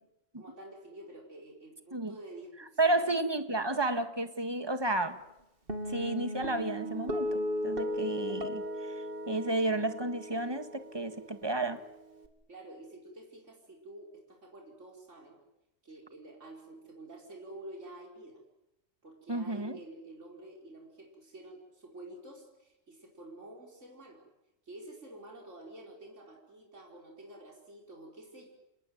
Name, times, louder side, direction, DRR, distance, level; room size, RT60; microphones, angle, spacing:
voice 1, 0.4-3.2 12.5-15.4 15.8-18.4 19.0-24.2 24.6-28.5, right 1 dB, 70° right, 0 dB, 5.1 m, -49 dB
voice 2, 2.8-5.2 5.9-8.9 9.3-11.8 19.3-19.8, right 2 dB, 20° right, 9 dB, 1.8 m, -32 dB
Guitar, 5.7-12.3, left 1 dB, 45° right, 2.7 m, -37 dB
28.0 x 19.5 x 9.4 m, 0.91 s
omnidirectional pair, 1.3 m